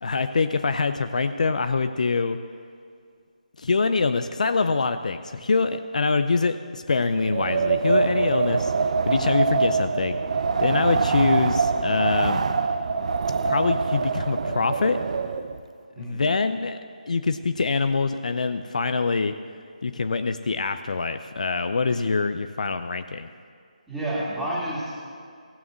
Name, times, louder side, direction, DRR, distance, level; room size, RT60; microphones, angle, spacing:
voice 1, 0.0-2.4 3.6-8.7 9.0-10.2 10.6-12.4 13.5-15.0 16.0-16.8 17.1-19.4 19.8-23.3, left 4 dB, 60° left, 10 dB, 0.5 m, -24 dB
Wind, 7.1-15.6, right 4 dB, 55° right, 0.6 m, -24 dB
voice 2, 15.9-16.3 23.9-25.0, right 1 dB, ahead, -8 dB, 2.2 m, -30 dB
16.0 x 7.1 x 6.3 m, 2.2 s
figure-of-eight pair, 155°, 4 cm